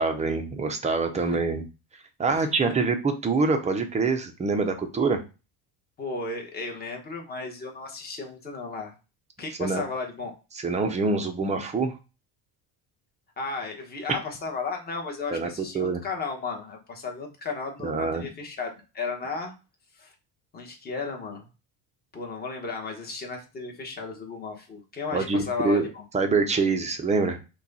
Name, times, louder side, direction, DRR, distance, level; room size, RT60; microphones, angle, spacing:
voice 1, 0.0-1.6 2.2-5.2 9.6-9.8 10.5-11.9 14.1-14.2 15.3-15.5 15.7-16.0 17.8-18.3 25.1-25.9 26.1-27.4, right 4 dB, 15° right, 6 dB, 0.5 m, -25 dB
voice 2, 6.0-8.9 9.4-10.3 13.4-19.5 20.0-20.1 20.5-21.5 22.1-26.0, left 4 dB, 20° left, 2 dB, 1.1 m, -34 dB
5.8 x 2.3 x 4.0 m, 0.30 s
cardioid pair, 155°, 44 cm